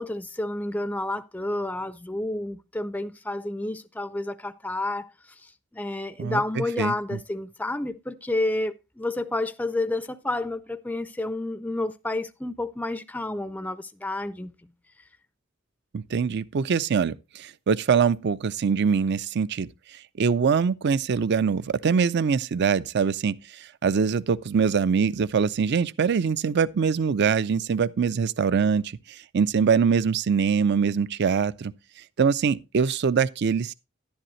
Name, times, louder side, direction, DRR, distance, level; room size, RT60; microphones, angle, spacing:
voice 1, 0.0-5.1 5.4-14.5, left 2 dB, 10° left, 0.4 m, -30 dB
voice 2, 6.8-7.2 15.9-19.7 20.2-23.3 23.8-28.9 29.3-31.7 32.2-33.7, right 6 dB, 55° right, 0.4 m, -23 dB
11.0 x 10.5 x 3.1 m
head